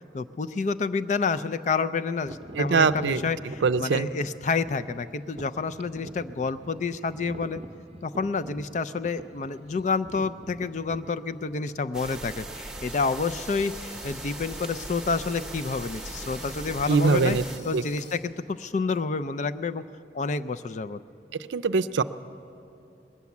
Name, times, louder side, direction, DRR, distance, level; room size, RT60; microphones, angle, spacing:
voice 1, 0.1-7.6 8.0-17.4 17.6-19.8 20.1-21.0, left 4 dB, 40° left, 13 dB, 0.4 m, -29 dB
sound 1, 2.2-12.0 12.7-12.8 13.4-13.7 13.9-14.2 14.8-15.4 15.6-19.0, right 1 dB, 35° right, 0.7 m, -46 dB
voice 2, 2.5-3.2 3.6-4.1 16.9-17.4 17.7-17.8 21.5-22.0, right 4 dB, 85° right, 11 dB, 0.5 m, -22 dB
sound 2, 11.9-17.6, right 2 dB, 5° right, 0.8 m, -39 dB
sound 3, 12.8-18.2, left 3 dB, 75° left, 2.0 m, -49 dB
20.5 x 9.4 x 7.1 m, 2.8 s
head